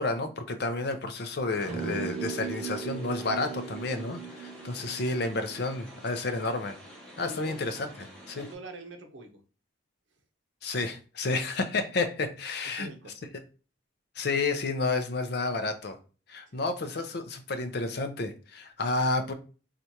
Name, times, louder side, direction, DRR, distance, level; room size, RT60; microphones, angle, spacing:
voice 1, 0.0-6.7 7.2-8.4 10.6-12.9 14.2-16.0 16.3-19.3, left 3 dB, 55° left, 0.5 m, -31 dB
sound 1, 1.6-8.5, equal, 5° left, 1.1 m, -49 dB
sound 2, 1.7-6.2, right 6 dB, 40° right, 0.6 m, -38 dB
voice 2, 7.2-7.6 8.3-9.4 12.7-13.3 16.5-16.6, right 2 dB, 70° right, 0.8 m, -45 dB
4.4 x 2.4 x 2.8 m
head